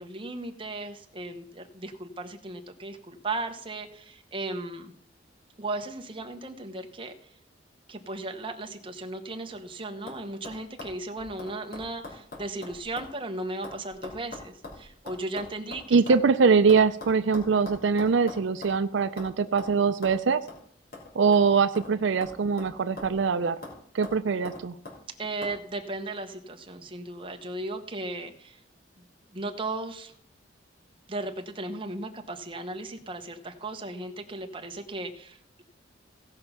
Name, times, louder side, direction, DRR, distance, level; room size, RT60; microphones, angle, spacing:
voice 1, 0.0-4.9 5.6-7.1 7.9-16.0 25.2-28.6 29.0-29.1 29.3-30.1 31.1-35.6, right 2 dB, 25° right, 5 dB, 1.1 m, -36 dB
sound 1, 9.3-9.7 10.1-10.2 10.4-13.1 13.4-16.2 16.7-18.8 19.2-19.3 19.6-19.7 20.0-20.2 20.5-20.6 20.9-21.9 22.2-23.2 23.6-23.8 24.0-25.0 25.4-25.6, left 2 dB, 50° left, 3.3 m, -42 dB
voice 2, 15.9-20.4 21.1-23.6 23.9-24.7, right 5 dB, 80° right, 11 dB, 0.5 m, -23 dB
16.5 x 5.7 x 5.7 m, 0.64 s
head